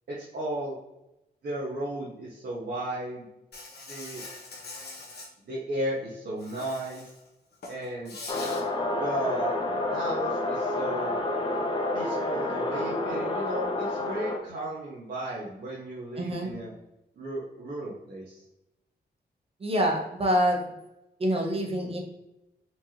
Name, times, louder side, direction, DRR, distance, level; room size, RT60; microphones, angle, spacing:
voice 1, 0.1-0.8 1.4-3.3 3.9-4.2 5.4-7.0 7.7-8.1 9.0-9.5 9.9-11.2 11.9-16.7 17.2-18.4, right 1 dB, 65° right, -7 dB, 1.1 m, -34 dB
Insect, 3.5-5.3 6.4-7.2 7.5-8.6, left 3 dB, 65° left, 1.0 m, -42 dB
sound 1, 8.3-14.4, left 2 dB, 25° left, 0.5 m, -29 dB
voice 2, 16.2-16.5 19.6-20.6 21.2-22.0, equal, 35° right, 1 dB, 0.7 m, -26 dB
4.4 x 3.1 x 2.8 m, 0.91 s
wide cardioid pair, 160°, 18 cm